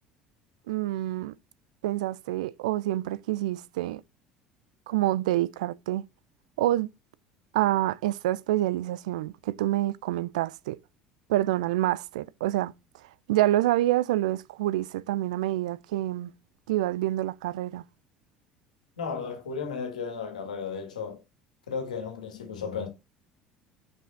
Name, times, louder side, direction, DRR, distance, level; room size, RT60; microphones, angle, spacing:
voice 1, 0.7-1.3 1.8-4.0 4.9-6.0 6.6-6.9 7.5-10.8 11.3-12.7 13.3-16.3 16.7-17.8, right 15 dB, 75° right, 0.3 m, -27 dB
voice 2, 19.0-21.2 21.7-22.9, left 5 dB, 85° left, 1.6 m, -34 dB
5.4 x 5.3 x 3.8 m
hypercardioid pair, 65°, 4 cm